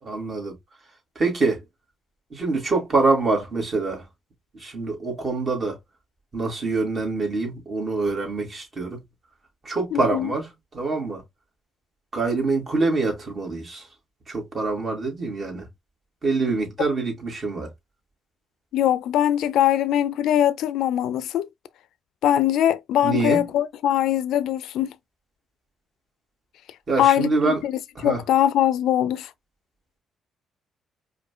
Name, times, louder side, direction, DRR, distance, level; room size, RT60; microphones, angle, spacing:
voice 1, 0.0-0.6 1.2-1.6 2.3-4.0 4.5-5.8 6.3-9.0 9.6-11.2 12.1-13.8 14.3-15.7 16.2-17.7 23.0-23.4 26.9-27.6 28.0-28.2, right 3 dB, 40° right, 2.3 m, -25 dB
voice 2, 9.9-10.3 18.7-21.5 22.2-24.9 27.0-29.3, left 11 dB, 80° left, 0.4 m, -22 dB
4.9 x 2.6 x 2.2 m
cardioid pair, 90°, 0 cm